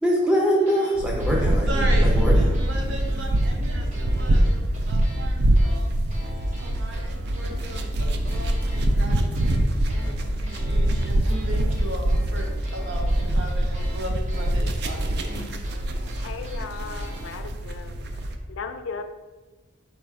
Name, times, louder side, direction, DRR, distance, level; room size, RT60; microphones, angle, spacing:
voice 1, 0.0-2.3, equal, 5° right, 0.7 m, -23 dB
sound 1, 0.6-0.9 1.2-5.3 5.6-17.3, equal, 35° right, 0.8 m, -44 dB
sound 2, 1.0-18.4, right 1 dB, 55° right, 0.4 m, -24 dB
voice 2, 1.7-5.9 6.6-15.5, right 1 dB, 70° right, 0.7 m, -37 dB
voice 3, 15.9-17.9 18.5-19.0, left 5 dB, 75° left, 0.4 m, -36 dB
4.1 x 2.4 x 4.6 m
head